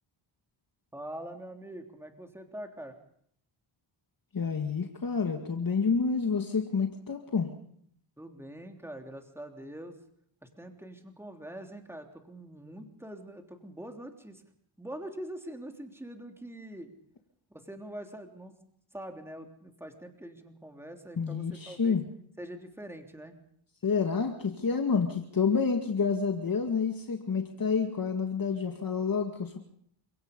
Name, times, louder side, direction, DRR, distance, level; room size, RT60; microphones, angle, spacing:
voice 1, 0.9-3.0 8.2-9.9 10.6-14.4 14.8-16.9 17.5-18.5 18.9-22.0 22.4-23.4, right 1 dB, 5° right, 4 dB, 3.4 m, -44 dB
voice 2, 4.3-7.5 21.2-22.1 23.8-29.6, left 5 dB, 45° left, 4 dB, 2.1 m, -29 dB
29.0 x 17.0 x 5.4 m, 0.66 s
cardioid pair, 90°, 50 cm